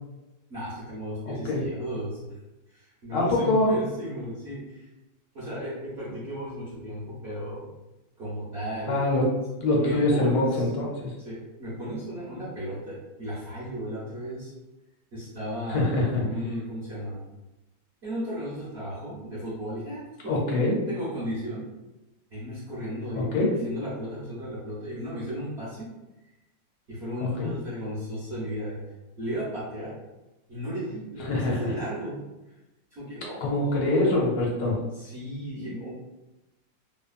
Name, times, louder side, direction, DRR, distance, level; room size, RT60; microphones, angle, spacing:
voice 1, 0.5-2.2 2.7-4.9 5.3-7.7 8.2-9.0 9.7-10.7 11.2-14.5 15.1-17.2 18.0-21.7 22.3-23.3 23.6-25.9 26.9-28.8 29.2-29.9 30.5-32.2 32.9-34.1 34.9-35.9, equal, 50° right, -10 dB, 0.9 m, -35 dB
voice 2, 1.3-1.6 3.1-3.7 8.9-9.2 9.6-11.1 15.7-16.2 20.3-20.8 23.3-23.5 27.2-27.5 31.2-31.7 33.4-34.7, left 2 dB, 75° left, -2 dB, 1.4 m, -24 dB
3.0 x 2.2 x 2.4 m, 1.0 s
omnidirectional pair, 2.0 m